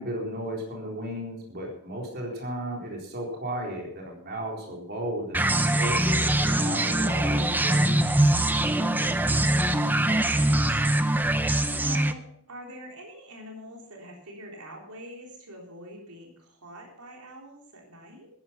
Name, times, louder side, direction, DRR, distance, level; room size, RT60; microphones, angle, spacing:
voice 1, 0.0-7.8, right 1 dB, 45° right, -1 dB, 4.0 m, -34 dB
sound 1, 5.3-12.1, right 1 dB, 10° right, 0.7 m, -23 dB
voice 2, 9.0-18.3, equal, 90° right, 0 dB, 3.7 m, -45 dB
13.5 x 10.5 x 5.8 m, 0.69 s
head